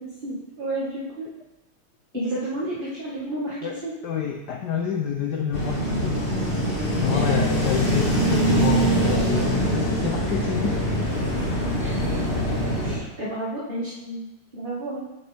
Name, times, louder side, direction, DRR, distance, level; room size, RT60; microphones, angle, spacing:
voice 1, 0.0-1.3 2.1-3.6 3.8-3.9 7.1-7.7 11.8-11.9 12.8-14.2 14.5-15.1, right 1 dB, 25° right, -7 dB, 1.5 m, -31 dB
voice 2, 3.6-6.2 7.0-10.8, left 7 dB, 70° left, 3 dB, 1.1 m, -28 dB
sound 1, 5.5-13.0, right 1 dB, 25° left, 1.8 m, -23 dB
8.6 x 8.4 x 3.4 m, 0.98 s
omnidirectional pair, 2.3 m